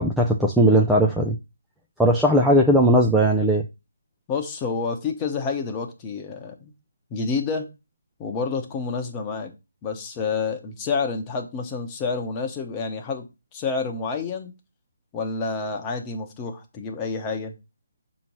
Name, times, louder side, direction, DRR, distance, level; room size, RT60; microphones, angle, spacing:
voice 1, 0.0-1.4 2.0-3.6, right 1 dB, ahead, -1 dB, 0.4 m, -18 dB
voice 2, 4.3-6.7 7.1-7.7 8.2-9.5 9.8-13.3 13.5-14.5 15.1-17.5, left 4 dB, 20° left, 3 dB, 0.9 m, -28 dB
6.0 x 3.0 x 5.4 m, 0.26 s
figure-of-eight pair, 155°, 0 cm